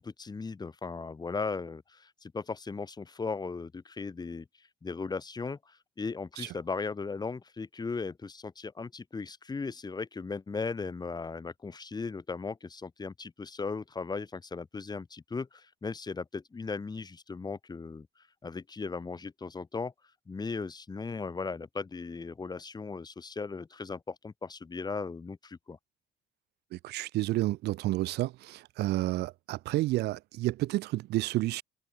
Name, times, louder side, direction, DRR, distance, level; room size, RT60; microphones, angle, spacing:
voice 1, 0.0-4.5 4.8-18.1 18.4-19.9 20.3-25.8, left 4 dB, 25° left, 3.8 m, -37 dB
voice 2, 26.7-31.6, right 17 dB, 80° right, 1.3 m, -30 dB
cardioid pair, 110°, 17 cm